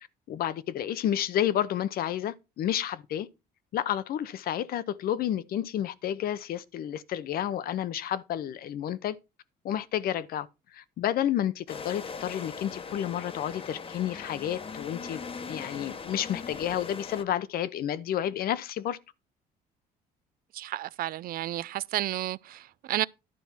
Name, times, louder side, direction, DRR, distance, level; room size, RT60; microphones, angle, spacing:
voice 1, 0.3-3.3 3.7-9.2 9.6-10.5 10.7-15.2 15.5-19.0, left 11 dB, 65° left, 0.9 m, -30 dB
sound 1, 11.7-17.2, left 5 dB, 35° left, 1.0 m, -40 dB
voice 2, 20.5-23.1, right 14 dB, 60° right, 0.5 m, -32 dB
12.0 x 4.3 x 5.8 m
cardioid pair, 110°, 17 cm